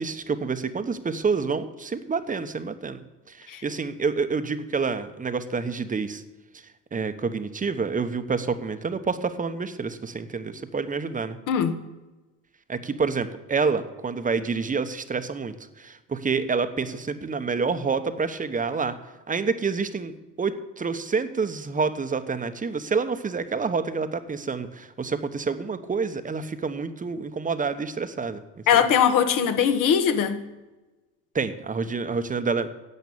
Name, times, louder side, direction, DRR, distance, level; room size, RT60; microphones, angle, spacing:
voice 1, 0.0-6.2 6.9-11.4 12.7-19.0 19.3-28.4 28.7-28.8 31.3-32.7, right 5 dB, 20° right, 1.1 m, -28 dB
voice 2, 11.5-11.8 28.7-30.4, left 8 dB, 55° left, 1.5 m, -21 dB
11.0 x 8.0 x 8.7 m
supercardioid pair, 85°, 38 cm